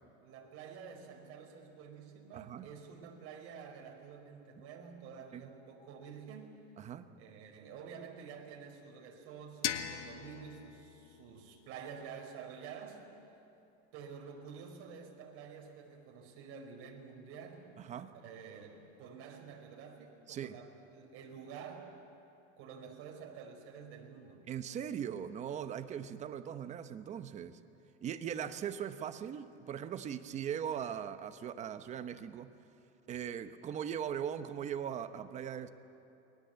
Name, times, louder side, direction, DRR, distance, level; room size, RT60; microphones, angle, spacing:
voice 1, 0.2-6.6 7.2-13.0 13.9-17.6 18.1-21.9 22.6-24.5, right 6 dB, 40° right, 1 dB, 4.8 m, -49 dB
voice 2, 2.3-2.7 5.3-5.5 6.8-7.1 17.8-18.1 20.3-20.6 24.5-27.6 28.0-32.5 33.1-35.7, right 9 dB, 20° right, 10 dB, 0.9 m, -40 dB
sound 1, 9.6-12.5, left 10 dB, 85° left, 1.8 m, -41 dB
29.0 x 21.5 x 8.1 m, 2.8 s
supercardioid pair, 155°, 34 cm